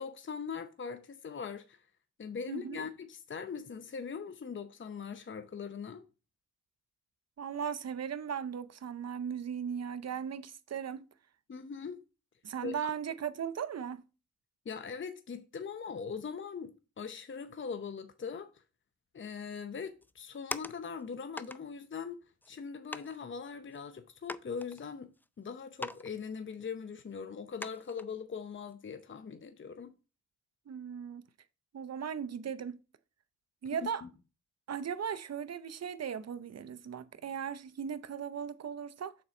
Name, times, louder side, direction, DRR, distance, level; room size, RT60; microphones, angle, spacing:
voice 1, 0.0-1.9 2.2-6.0 11.5-12.0 12.6-12.9 14.7-18.6 19.1-25.1 25.4-29.9, left 6 dB, 40° left, 0.7 m, -41 dB
voice 2, 2.5-2.8 7.4-11.1 12.4-14.0 30.7-31.2 31.7-32.8 33.6-34.0 34.7-39.2, right 7 dB, 60° right, 0.6 m, -37 dB
sound 1, 20.0-21.0 21.4-21.6 22.4-22.5 22.9-23.2 23.7-23.8 24.3-25.3 25.8-26.1 26.3-26.4 27.0-27.1 27.6-28.1 28.6-28.7, left 2 dB, 5° left, 0.3 m, -42 dB
6.5 x 4.3 x 4.2 m
cardioid pair, 55°, 29 cm